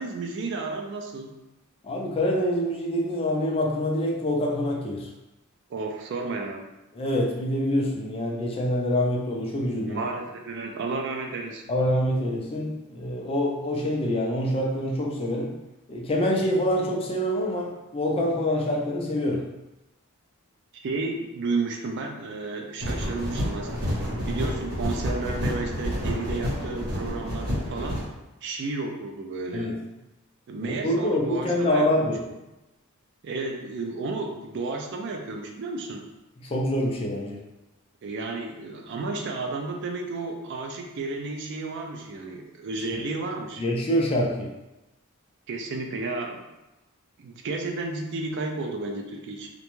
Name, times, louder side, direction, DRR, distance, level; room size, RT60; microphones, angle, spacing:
voice 1, 0.0-1.4 5.7-6.7 9.8-11.6 20.7-23.8 24.3-28.0 28.4-29.7 30.5-32.1 33.2-36.0 38.0-43.6 45.5-46.4 47.2-49.5, right 3 dB, 55° right, 2 dB, 0.4 m, -32 dB
voice 2, 1.8-5.1 6.9-10.0 11.7-15.5 15.9-19.4 29.5-29.8 30.6-32.3 36.4-37.4 42.9-43.0 43.6-44.5, left 1 dB, 25° left, -1 dB, 0.4 m, -26 dB
sound 1, 22.8-28.0, equal, 80° right, 1.0 m, -29 dB
2.5 x 2.2 x 3.0 m, 0.98 s
head